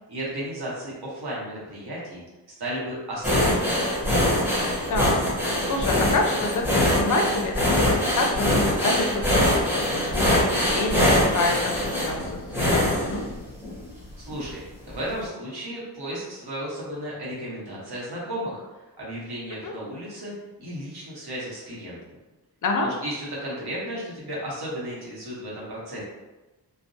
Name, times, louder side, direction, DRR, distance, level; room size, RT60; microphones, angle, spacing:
voice 1, 0.1-2.2 2.6-3.8 14.2-14.6 14.9-20.3 20.6-22.1 22.8-26.0, right 1 dB, 65° right, -6 dB, 1.0 m, -34 dB
sound 1, 3.2-13.8 14.3-14.5 14.9-15.0, left 1 dB, 5° right, 0.8 m, -23 dB
voice 2, 4.9-13.2 19.6-19.7 22.6-22.9, left 2 dB, 50° left, 2 dB, 0.5 m, -28 dB
2.5 x 2.0 x 2.6 m, 1.1 s
wide cardioid pair, 105°, 41 cm